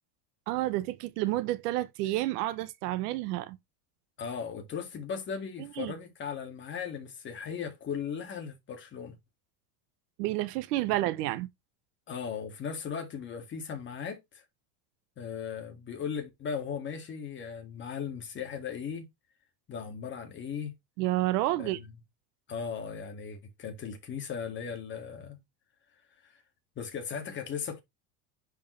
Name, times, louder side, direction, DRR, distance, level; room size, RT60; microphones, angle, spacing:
voice 1, 0.5-3.6 5.6-5.9 10.2-11.5 21.0-21.8, right 16 dB, 75° right, 1.0 m, -30 dB
voice 2, 4.2-9.2 10.9-11.0 12.1-14.4 15.2-19.1 19.7-20.7 21.6-21.8 22.5-25.4 26.2-26.4 26.8-27.8, left 7 dB, 25° left, 2.0 m, -37 dB
10.5 x 4.8 x 3.1 m
cardioid pair, 170°, 48 cm